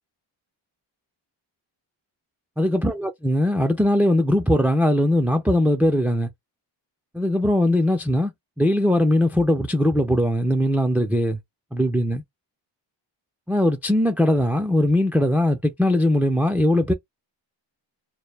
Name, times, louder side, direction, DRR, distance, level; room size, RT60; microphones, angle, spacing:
voice 1, 2.6-6.3 7.1-8.3 8.6-11.4 11.7-12.2 13.5-16.9, left 1 dB, 5° right, 0.3 m, -20 dB
2.0 x 2.0 x 3.2 m
cardioid pair, 80°, 45 cm